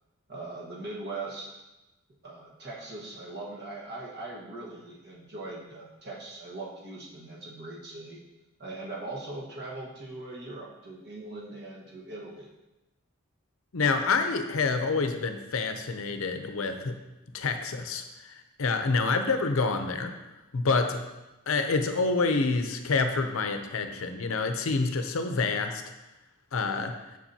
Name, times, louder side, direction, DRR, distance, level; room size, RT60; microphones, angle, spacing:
voice 1, 0.3-1.5 2.2-8.2 8.6-12.5, right 2 dB, 50° right, -4 dB, 1.4 m, -40 dB
voice 2, 13.7-17.0 17.3-20.2 20.5-21.0 21.5-25.8 26.5-27.0, left 4 dB, 70° left, 7 dB, 0.6 m, -27 dB
7.2 x 6.0 x 2.8 m, 1.0 s
head